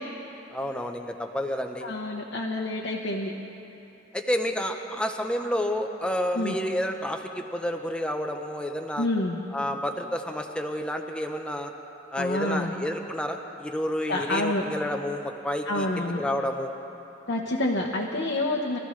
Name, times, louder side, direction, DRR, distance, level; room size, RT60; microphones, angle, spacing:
voice 1, 0.5-1.9 4.1-9.1 9.5-11.7 12.1-16.7, equal, 5° left, 3 dB, 0.7 m, -30 dB
voice 2, 1.8-3.3 6.3-6.6 9.0-9.4 12.2-12.7 14.1-14.6 15.7-16.2 17.3-18.8, left 1 dB, 75° left, -2 dB, 1.1 m, -28 dB
24.5 x 14.0 x 3.2 m, 2.9 s
head